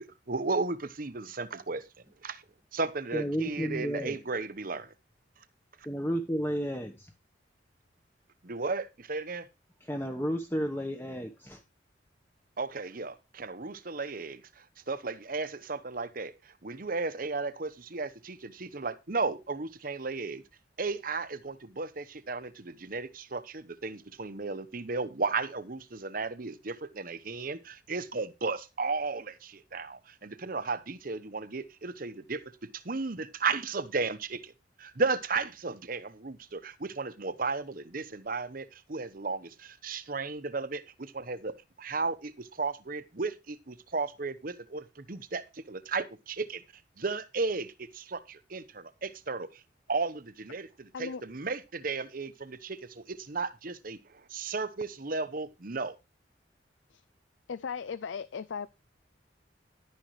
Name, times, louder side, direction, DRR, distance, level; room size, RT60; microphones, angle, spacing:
voice 1, 0.3-1.9 2.2-2.4 2.7-4.9 8.4-9.5 12.6-20.4 20.8-32.4 32.7-34.5 34.8-46.6 47.0-49.6 49.9-56.0, right 4 dB, 50° right, 0.9 m, -34 dB
voice 2, 3.1-4.2 5.8-7.1 9.8-11.6, equal, 10° left, 1.1 m, -32 dB
voice 3, 57.5-58.7, left 6 dB, 85° left, 0.5 m, -37 dB
11.5 x 10.0 x 3.2 m
head